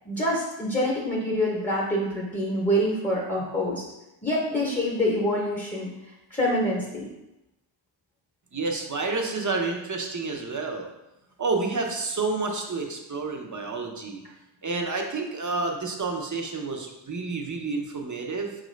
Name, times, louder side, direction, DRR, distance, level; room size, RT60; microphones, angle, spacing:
voice 1, 0.0-3.8 4.2-5.9 6.3-7.1, equal, 15° left, -4 dB, 0.8 m, -26 dB
voice 2, 8.5-10.9 11.4-14.2 14.6-18.6, right 3 dB, 40° right, 2 dB, 0.7 m, -29 dB
4.7 x 2.5 x 3.1 m, 0.95 s
cardioid pair, 55°, 48 cm